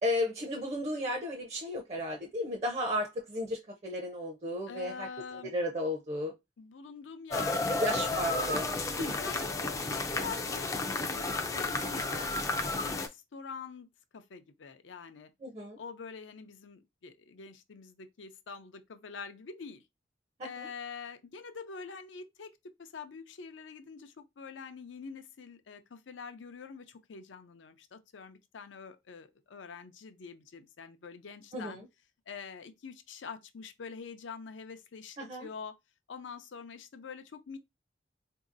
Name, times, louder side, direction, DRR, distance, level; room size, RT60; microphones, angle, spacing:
voice 1, 0.0-6.3 7.8-8.7 9.0-9.1 15.4-15.8 20.4-20.7 31.5-31.8 35.2-35.5, left 1 dB, 35° right, 0.5 m, -34 dB
voice 2, 4.7-5.5 6.6-8.6 8.9-13.9 14.1-15.3 15.8-19.8 20.4-22.5 22.8-31.8 32.3-35.8 36.1-37.6, left 5 dB, 85° left, 0.5 m, -45 dB
sound 1, 7.3-13.1, left 3 dB, 15° left, 0.3 m, -32 dB
3.9 x 2.7 x 2.5 m
head